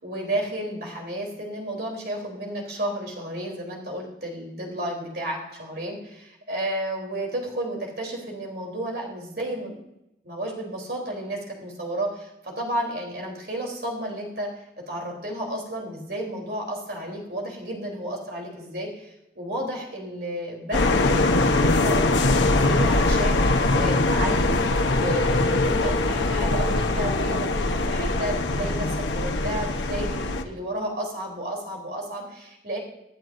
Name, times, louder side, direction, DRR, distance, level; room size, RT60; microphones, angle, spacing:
voice 1, 0.0-9.7 10.2-14.5 14.9-24.6 24.9-32.8, right 1 dB, 60° right, -1 dB, 3.6 m, -32 dB
sound 1, 20.7-30.4, left 2 dB, 85° left, 1.0 m, -22 dB
26.0 x 9.2 x 2.7 m, 0.85 s
head